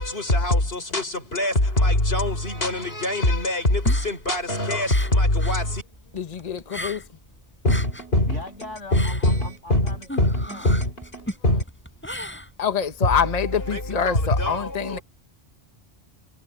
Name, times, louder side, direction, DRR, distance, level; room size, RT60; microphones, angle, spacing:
voice 1, 1.8-3.8 4.1-4.9 5.2-5.6 7.7-7.8 8.1-8.2 8.9-9.4 9.7-9.9 10.2-10.3 10.7-10.8 11.4-11.6 14.4-14.6, left 1 dB, 55° left, 5.2 m, -21 dB
sound 1, 3.7-5.7 5.9-7.3 7.5-13.0, left 1 dB, 10° left, 5.7 m, -36 dB
voice 2, 5.4-5.7 8.2-10.7, left 2 dB, 80° left, 7.7 m, -41 dB
voice 3, 6.1-7.0 12.6-15.0, left 7 dB, 35° left, 1.2 m, -25 dB
omnidirectional pair, 1.2 m